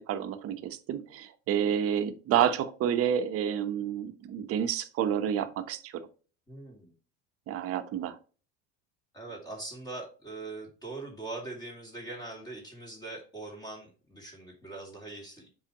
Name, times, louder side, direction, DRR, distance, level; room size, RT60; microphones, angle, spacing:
voice 1, 0.1-5.9 7.5-8.2, right 9 dB, 45° right, 1.1 m, -29 dB
voice 2, 6.5-6.9 9.1-15.5, right 2 dB, 10° left, 2.7 m, -42 dB
7.4 x 4.9 x 3.0 m
supercardioid pair, 130°, 32 cm